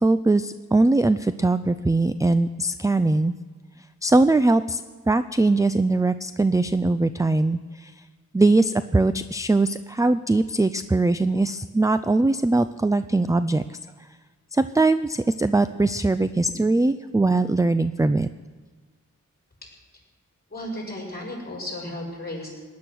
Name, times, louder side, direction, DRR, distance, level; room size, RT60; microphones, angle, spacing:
voice 1, 0.0-3.3 4.0-7.9 8.3-13.8 14.5-18.3, right 2 dB, 10° right, 12 dB, 0.4 m, -21 dB
voice 2, 20.5-22.5, left 1 dB, 30° left, -2 dB, 6.2 m, -34 dB
18.5 x 10.5 x 6.3 m, 1.4 s
wide cardioid pair, 80°, 31 cm